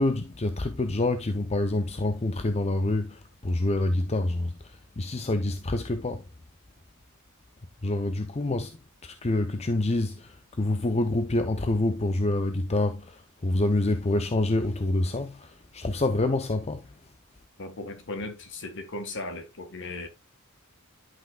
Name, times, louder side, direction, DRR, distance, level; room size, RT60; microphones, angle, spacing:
voice 1, 0.0-6.2 7.8-16.9, left 2 dB, 30° left, 0.6 m, -27 dB
voice 2, 17.6-20.1, left 2 dB, 60° left, 1.5 m, -37 dB
11.0 x 5.8 x 2.3 m
head